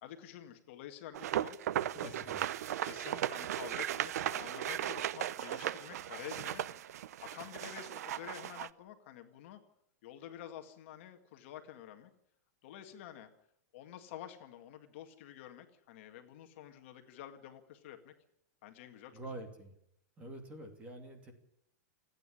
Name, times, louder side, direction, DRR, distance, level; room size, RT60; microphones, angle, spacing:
voice 1, 0.0-1.6 2.0-2.3 2.8-6.6 7.2-9.6 10.0-12.1 12.6-13.3 13.7-18.1 18.6-19.1, left 11 dB, 45° left, 6 dB, 1.9 m, -49 dB
sound 1, 1.1-8.7, right 11 dB, 65° right, 0.7 m, -37 dB
voice 2, 1.9-2.3 19.1-19.7 20.2-21.3, right 1 dB, 15° right, 5 dB, 2.7 m, -46 dB
28.5 x 9.6 x 9.9 m, 0.74 s
supercardioid pair, 170°, 9 cm